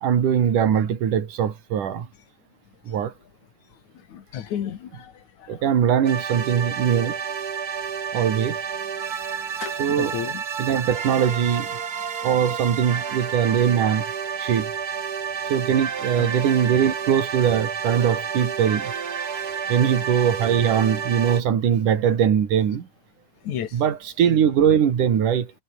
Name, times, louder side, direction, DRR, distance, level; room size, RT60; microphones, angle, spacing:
voice 1, 0.0-2.1 2.9-3.1 5.5-7.2 8.1-8.6 9.8-10.2 10.6-11.8 12.2-14.1 14.4-14.7 15.5-18.9 19.7-22.9 23.7-25.5, right 8 dB, 75° right, 4.0 m, -21 dB
voice 2, 4.1-5.1 9.6-10.4 16.2-16.3 23.4-23.7, left 9 dB, 65° left, 3.1 m, -31 dB
sound 1, 6.0-21.4, right 7 dB, 40° right, 1.4 m, -30 dB
omnidirectional pair, 3.7 m